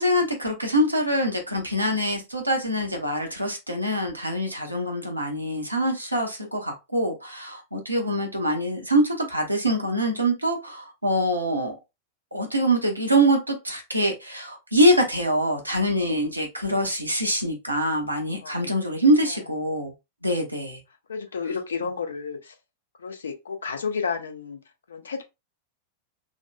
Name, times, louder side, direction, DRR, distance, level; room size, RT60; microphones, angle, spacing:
voice 1, 0.0-11.7 12.3-19.9 20.2-20.8, equal, 85° right, 0.8 m, -24 dB
voice 2, 21.1-22.5 23.0-24.6 24.9-25.2, left 5 dB, 70° left, 0.6 m, -31 dB
3.7 x 2.2 x 2.2 m
figure-of-eight pair, 90°, 0 cm